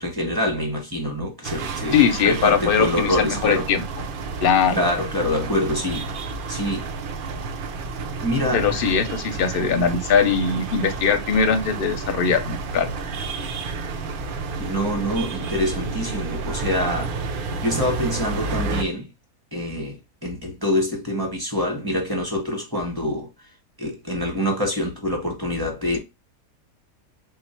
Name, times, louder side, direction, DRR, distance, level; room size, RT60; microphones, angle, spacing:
voice 1, 0.0-2.0 2.2-3.7 4.7-6.1 6.5-6.9 8.2-8.6 14.6-17.1 17.6-19.1 19.5-23.3 23.8-26.0, left 1 dB, 15° right, 1.0 m, -25 dB
sound 1, 1.4-18.8, right 4 dB, 70° right, 0.5 m, -30 dB
voice 2, 1.9-3.8 4.4-4.8 8.5-12.9, left 6 dB, 55° left, 0.6 m, -21 dB
3.8 x 2.4 x 4.2 m
omnidirectional pair, 1.5 m